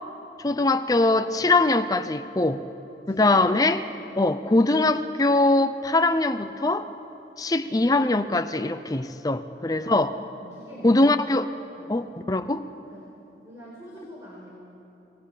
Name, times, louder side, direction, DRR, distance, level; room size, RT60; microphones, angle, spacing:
voice 1, 0.4-2.6 3.1-3.8 4.2-6.9 7.4-10.2 10.8-11.5 11.9-12.7, left 2 dB, 20° left, 10 dB, 0.6 m, -22 dB
voice 2, 3.1-3.5 3.9-4.4 9.6-11.1 11.7-12.0 12.9-13.1 13.4-14.6, equal, 20° right, -7 dB, 4.7 m, -46 dB
27.5 x 21.5 x 5.1 m, 2.9 s
head